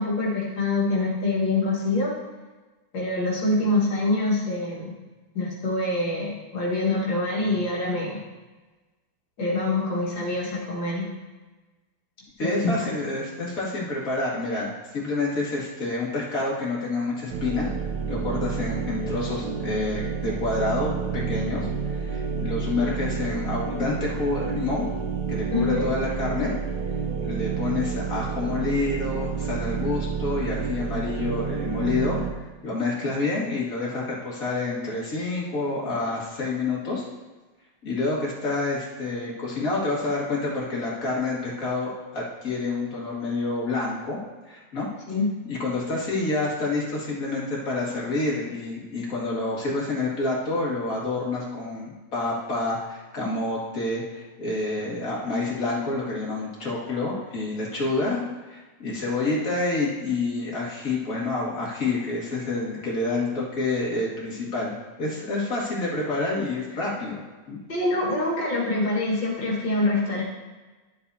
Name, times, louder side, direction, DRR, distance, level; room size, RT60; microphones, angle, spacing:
voice 1, 0.0-2.1 2.9-5.0 5.3-8.2 9.4-11.1 12.4-12.9 25.5-25.9 45.1-45.3 67.7-70.2, left 2 dB, 80° left, -6 dB, 2.5 m, -25 dB
voice 2, 12.4-14.7 14.9-17.7 18.1-24.9 25.3-26.5 27.2-32.2 32.6-37.0 37.8-44.2 44.5-44.9 45.5-67.6, left 2 dB, 50° left, -5 dB, 2.5 m, -28 dB
sound 1, 17.3-32.3, right 6 dB, 70° right, 1.4 m, -30 dB
12.0 x 7.5 x 2.8 m, 1.2 s
omnidirectional pair, 2.0 m